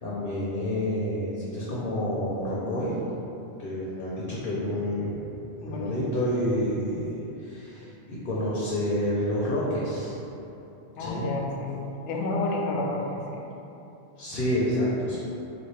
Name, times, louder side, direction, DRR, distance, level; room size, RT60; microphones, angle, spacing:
voice 1, 0.0-2.9 3.6-5.2 5.6-10.1 11.0-11.3 14.2-15.2, equal, 60° left, -7 dB, 0.8 m, -29 dB
voice 2, 5.6-6.0 11.0-13.4, left 2 dB, 90° left, -1 dB, 0.9 m, -30 dB
4.2 x 2.4 x 3.2 m, 2.9 s
omnidirectional pair, 1.2 m